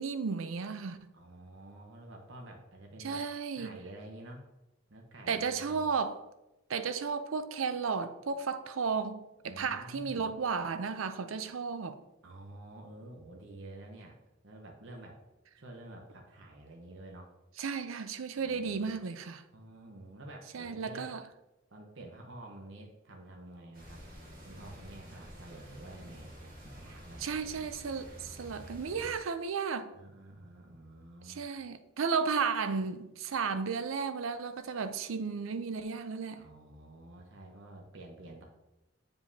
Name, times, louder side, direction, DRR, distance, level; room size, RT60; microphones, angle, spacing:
voice 1, 0.0-1.0 3.0-3.7 5.3-6.2 6.7-12.0 17.6-19.4 20.5-21.2 27.2-29.9 31.3-36.5, right 5 dB, 80° right, 0.5 m, -34 dB
voice 2, 1.1-3.2 3.5-4.5 4.9-5.8 9.4-10.3 12.2-14.2 14.4-15.2 15.6-17.3 18.4-18.9 19.5-21.1 21.7-24.0 24.4-27.7 29.9-31.4 36.4-38.4, right 1 dB, 65° right, 0.9 m, -49 dB
sound 1, 23.7-29.2, equal, 45° right, 1.5 m, -49 dB
7.6 x 4.9 x 2.7 m
head